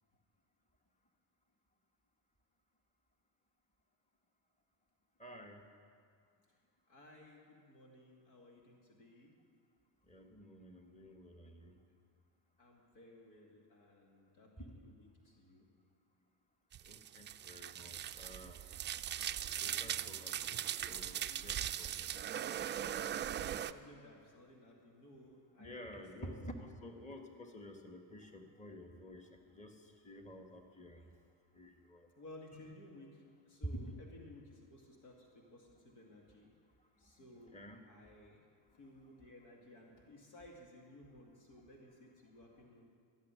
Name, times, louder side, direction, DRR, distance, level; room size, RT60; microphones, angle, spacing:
voice 1, 5.2-5.6 10.1-11.7 14.6-14.8 16.9-18.6 19.6-22.2 25.6-31.1 31.5-32.1 32.5-32.7 33.6-33.9 37.5-37.8, equal, 15° left, 4 dB, 1.7 m, -50 dB
voice 2, 6.9-9.3 12.6-15.7 23.6-26.5 32.2-36.5 37.0-37.6 37.9-38.4 38.7-42.9, left 1 dB, 85° left, 0 dB, 2.6 m, -57 dB
sound 1, 16.7-23.7, right 10 dB, 25° right, 0.3 m, -40 dB
15.0 x 7.5 x 9.7 m, 2.2 s
hypercardioid pair, 70°, 50 cm